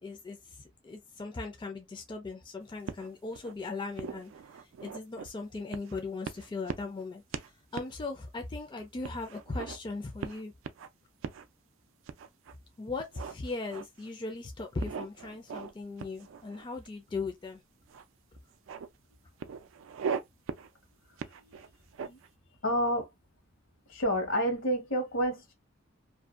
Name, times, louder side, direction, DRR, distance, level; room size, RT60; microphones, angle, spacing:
voice 1, 0.0-4.3 4.8-7.4 7.7-10.5 12.8-17.6, left 3 dB, 25° left, 0.4 m, -38 dB
sound 1, 2.9-3.5 4.0-5.3 5.7-6.0 6.2-7.0 7.3-7.5 7.7-7.9 8.4-8.5 9.0-9.8 10.2-10.9 11.2-11.4 12.1-12.5 13.0-14.1 14.8-15.7 16.0-16.9 17.9-18.0 18.4-18.9 19.4-20.2 20.5-20.7 21.2-22.3, right 6 dB, 80° right, 0.3 m, -39 dB
voice 2, 22.6-23.1 23.9-25.5, equal, 80° left, 1.1 m, -29 dB
2.6 x 2.1 x 2.4 m
head